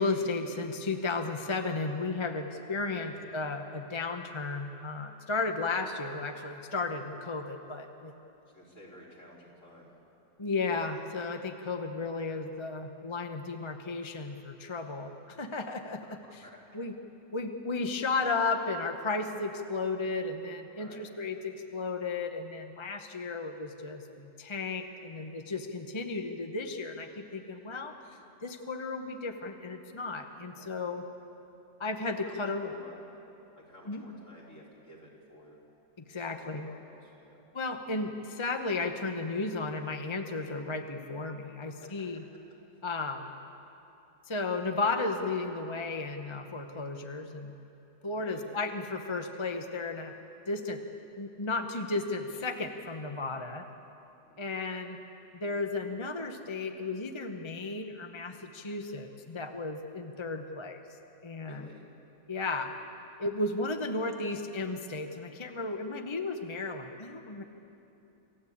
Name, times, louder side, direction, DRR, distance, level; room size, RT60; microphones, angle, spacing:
voice 1, 0.0-8.1 10.4-16.4 16.7-16.9 17.3-27.9 28.4-31.0 31.8-32.7 33.9-34.0 36.1-36.7 37.5-42.2 42.8-43.3 44.3-47.5 48.0-50.1 50.5-50.8 51.2-53.7 54.4-55.0 55.3-60.8 61.2-61.7 62.3-62.7 63.2-67.4, left 3 dB, 25° left, 5 dB, 0.7 m, -34 dB
voice 2, 8.4-9.9 14.9-15.1 16.0-16.6 20.7-21.0 30.4-30.8 32.0-33.0 33.6-35.6 36.1-37.4 41.8-42.2 42.7-42.8 45.1-45.3 48.0-48.5 54.2-54.6 61.4-61.8, equal, 45° left, -4 dB, 4.4 m, -54 dB
27.5 x 15.0 x 8.6 m, 3.0 s
omnidirectional pair, 1.9 m